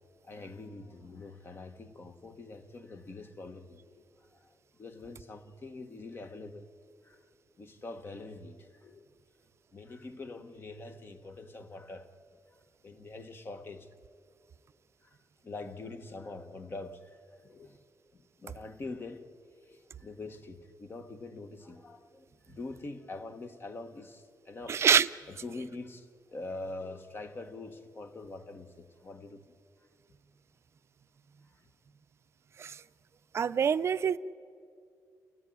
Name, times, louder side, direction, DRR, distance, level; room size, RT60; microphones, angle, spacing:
voice 1, 0.3-4.0 4.3-6.6 7.0-7.2 7.6-9.0 9.7-12.1 12.8-13.9 15.4-17.2 17.4-17.8 18.4-19.3 19.7-24.8 25.3-29.4, left 3 dB, 35° left, 1.4 m, -44 dB
voice 2, 24.7-25.1 32.6-32.7 33.3-34.2, right 7 dB, 45° right, 0.6 m, -25 dB
29.0 x 15.0 x 9.6 m
cardioid pair, 130°, 6 cm